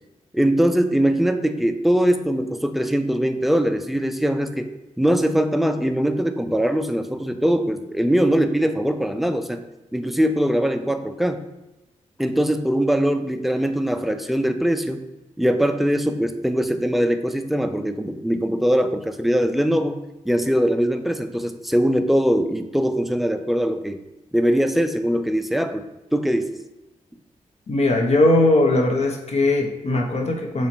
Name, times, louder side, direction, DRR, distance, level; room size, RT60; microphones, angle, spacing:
voice 1, 0.3-4.7 5.0-9.6 9.9-11.4 12.2-15.0 15.4-20.0 20.2-24.0 24.3-25.8 26.1-26.6, equal, ahead, 7 dB, 0.3 m, -21 dB
voice 2, 27.7-30.7, left 2 dB, 50° left, 2 dB, 0.7 m, -19 dB
3.1 x 2.8 x 4.2 m, 0.99 s
cardioid pair, 55°, 14 cm